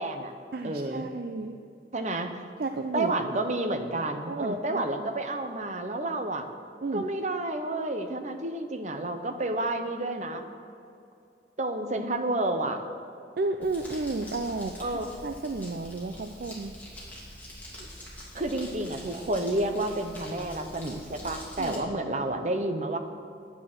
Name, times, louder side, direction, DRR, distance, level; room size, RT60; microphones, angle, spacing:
voice 1, 0.0-0.3 0.6-1.1 1.9-2.3 2.9-6.5 6.9-10.4 11.6-12.8 14.8-15.1 18.3-23.0, right 2 dB, 40° right, 6 dB, 0.9 m, -30 dB
voice 2, 0.5-1.6 2.6-3.4 4.3-5.1 6.8-7.1 13.4-16.7 21.6-21.8, right 3 dB, 55° right, 7 dB, 0.4 m, -33 dB
Crumpling crinkling, 13.6-21.8, left 1 dB, 10° left, 2.8 m, -44 dB
10.0 x 9.7 x 6.1 m, 2.6 s
head